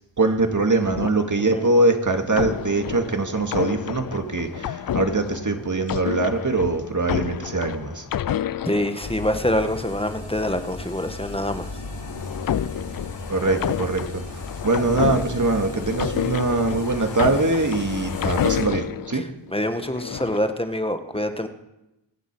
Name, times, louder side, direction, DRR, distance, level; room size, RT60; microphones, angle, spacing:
voice 1, 0.2-8.0 13.3-19.2, right 3 dB, 40° right, 5 dB, 2.2 m, -23 dB
sound 1, 0.8-1.7 2.3-9.6 11.5-19.1 19.7-20.5, left 10 dB, 45° left, 0.5 m, -30 dB
voice 2, 8.7-11.7 19.5-21.5, left 1 dB, 10° left, 8 dB, 1.5 m, -25 dB
sound 2, 9.0-18.6, left 2 dB, 65° left, 7.6 m, -36 dB
23.5 x 8.2 x 6.2 m, 0.93 s
cardioid pair, 45°, 49 cm